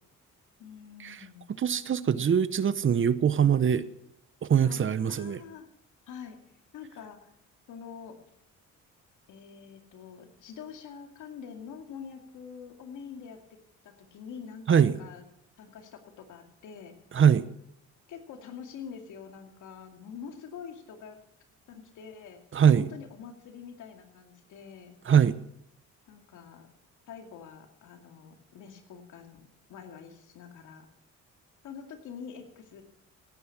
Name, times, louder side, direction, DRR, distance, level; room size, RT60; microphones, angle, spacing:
voice 1, 0.6-1.5 4.6-5.7 6.1-6.4 6.7-7.3 7.7-8.2 9.3-13.6 13.8-15.2 15.6-16.9 18.1-21.2 21.7-22.4 22.8-25.0 26.1-26.7 27.1-30.9 31.6-32.8, left 7 dB, 80° left, 5 dB, 2.4 m, -45 dB
voice 2, 1.5-3.8 4.4-5.4 14.7-15.0 17.1-17.5 22.5-22.9 25.1-25.4, right 8 dB, 40° right, 16 dB, 0.8 m, -22 dB
17.5 x 9.4 x 6.0 m, 0.76 s
cardioid pair, 90°, 30 cm